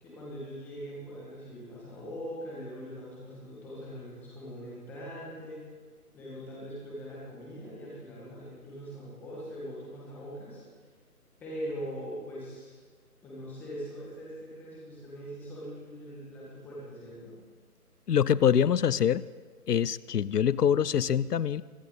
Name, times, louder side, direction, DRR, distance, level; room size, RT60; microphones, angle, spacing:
voice 1, 0.0-5.7 6.1-10.6 11.4-12.7 13.2-17.4, equal, 5° left, -6 dB, 1.7 m, -41 dB
voice 2, 18.1-19.2 19.7-21.6, left 8 dB, 80° left, 20 dB, 0.6 m, -24 dB
23.5 x 12.0 x 4.0 m, 1.5 s
figure-of-eight pair, 160°, 47 cm